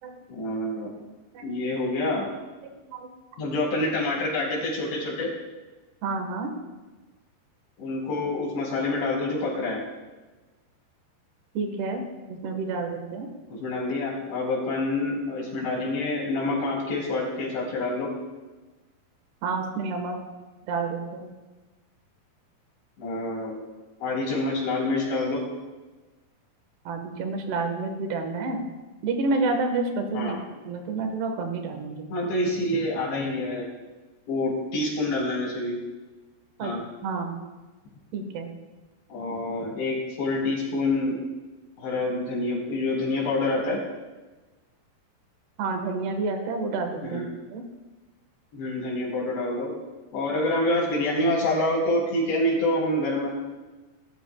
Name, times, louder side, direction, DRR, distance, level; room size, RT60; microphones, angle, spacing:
voice 1, 0.3-0.9 1.4-2.3 3.4-5.3 7.8-9.8 13.5-18.1 23.0-23.6 24.0-25.4 30.1-30.4 32.1-33.6 34.3-35.8 36.6-36.8 39.1-41.2 41.8-43.8 47.1-47.3 48.5-49.7 50.1-53.3, left 2 dB, 85° left, -4 dB, 6.9 m, -27 dB
voice 2, 6.0-6.5 11.5-13.3 19.4-20.2 20.7-21.3 26.8-28.6 29.0-30.4 30.7-32.1 36.6-36.7 37.0-37.4 38.1-38.5 45.6-47.2 47.5-47.6, right 3 dB, 70° right, 4 dB, 3.5 m, -29 dB
23.0 x 13.0 x 2.4 m, 1.2 s
omnidirectional pair, 5.0 m